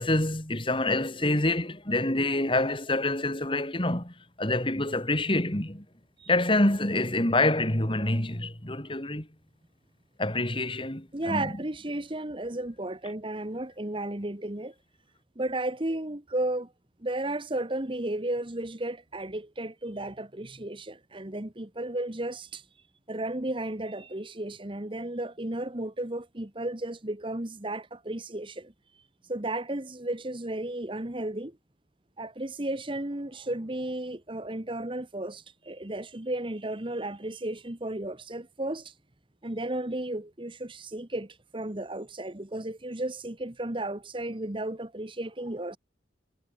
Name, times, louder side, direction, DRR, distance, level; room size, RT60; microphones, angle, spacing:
voice 1, 0.0-5.9 6.3-9.3 10.2-11.5, left 2 dB, 30° left, 3.4 m, -27 dB
voice 2, 11.1-14.7 15.3-16.7 17.0-22.6 23.1-28.7 29.3-31.6 32.2-38.9 39.4-45.8, right 1 dB, 30° right, 1.4 m, -34 dB
head